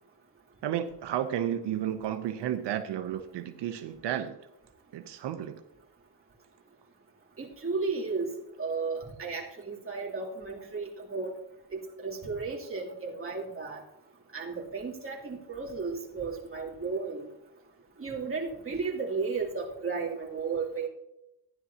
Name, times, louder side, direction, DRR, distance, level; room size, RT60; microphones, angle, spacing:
voice 1, 0.6-4.4 4.9-5.6, right 10 dB, 90° right, 7 dB, 0.7 m, -32 dB
voice 2, 7.4-8.3 8.6-11.3 11.7-13.8 14.3-17.3 18.0-20.9, right 4 dB, 30° right, -4 dB, 2.8 m, -34 dB
15.5 x 10.5 x 2.8 m, 0.88 s
cardioid pair, 100°, 40 cm